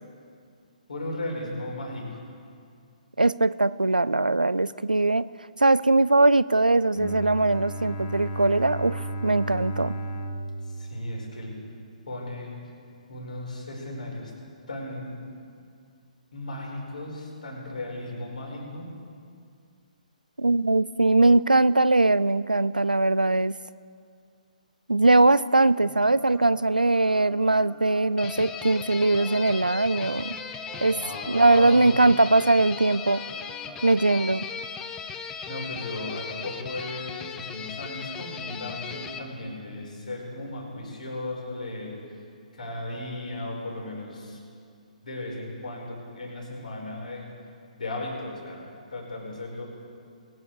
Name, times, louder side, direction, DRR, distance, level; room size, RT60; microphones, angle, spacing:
voice 1, 0.9-2.2 10.6-11.6 12.1-12.6 13.1-14.3 14.7-15.2 16.3-19.0 30.9-31.9 35.4-42.0 42.5-44.4 45.0-47.3 47.8-49.7, left 1 dB, 65° left, -2 dB, 4.6 m, -36 dB
voice 2, 3.2-5.3 5.6-10.0 20.4-23.5 24.9-30.3 30.8-31.0 31.3-33.2 33.8-34.5, right 2 dB, 90° right, 18 dB, 0.4 m, -21 dB
Bowed string instrument, 6.9-11.9, right 1 dB, 35° left, 1.2 m, -35 dB
sound 1, 25.8-33.9, right 5 dB, 10° right, 1.1 m, -47 dB
sound 2, 28.2-39.2, left 6 dB, 15° left, 0.6 m, -37 dB
21.5 x 9.2 x 4.8 m, 2.3 s
figure-of-eight pair, 130°, 4 cm